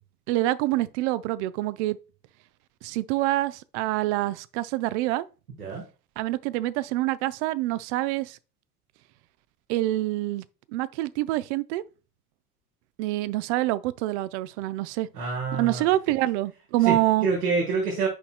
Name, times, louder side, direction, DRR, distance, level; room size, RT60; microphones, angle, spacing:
voice 1, 0.3-2.0 2.8-5.3 6.2-8.4 9.7-10.4 10.7-11.8 13.0-15.1 15.5-17.3, right 16 dB, 50° right, 0.5 m, -26 dB
voice 2, 15.1-15.9 16.8-18.1, right 4 dB, 75° right, 1.6 m, -27 dB
10.0 x 4.1 x 2.2 m
figure-of-eight pair, 65°, 45 cm